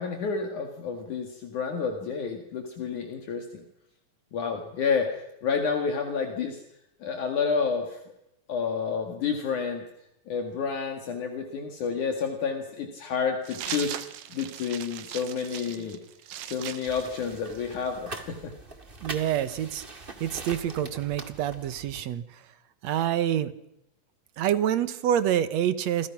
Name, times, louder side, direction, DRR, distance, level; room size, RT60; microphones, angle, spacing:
voice 1, 0.0-3.6 4.3-6.6 7.0-8.0 8.5-9.8 10.3-14.0 14.3-16.0 16.5-18.5, left 5 dB, 65° left, 4 dB, 3.5 m, -30 dB
sound 1, 13.4-17.9, right 11 dB, 90° right, 2.9 m, -39 dB
sound 2, 16.8-22.0, right 3 dB, 20° right, 1.7 m, -43 dB
voice 2, 19.0-19.8 20.2-22.4 22.8-23.5 24.4-26.1, right 10 dB, 65° right, 13 dB, 2.1 m, -27 dB
27.5 x 26.0 x 6.1 m, 0.81 s
omnidirectional pair, 3.9 m